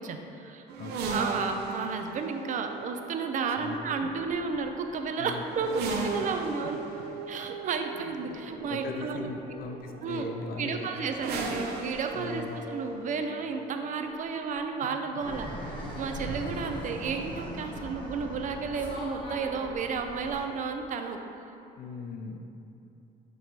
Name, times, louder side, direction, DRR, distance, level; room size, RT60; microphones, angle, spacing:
voice 1, 0.0-0.6 1.1-6.8 7.3-9.6 10.0-10.3 10.6-15.5 15.9-21.2, right 5 dB, 50° right, 5 dB, 0.5 m, -32 dB
sound 1, 0.7-18.5 19.5-20.5, right 3 dB, 80° right, 0.7 m, -39 dB
voice 2, 0.8-1.3 3.6-3.8 4.0-4.1 5.2-5.5 7.9-8.3 8.7-10.9 12.1-12.5 16.1-16.5 21.8-22.4, left 4 dB, 60° left, 5 dB, 0.6 m, -39 dB
Fixed-wing aircraft airplane, 15.2-20.4, left 1 dB, 30° left, 1.3 m, -39 dB
8.0 x 3.1 x 4.3 m, 2.7 s
cardioid pair, 110°, 17 cm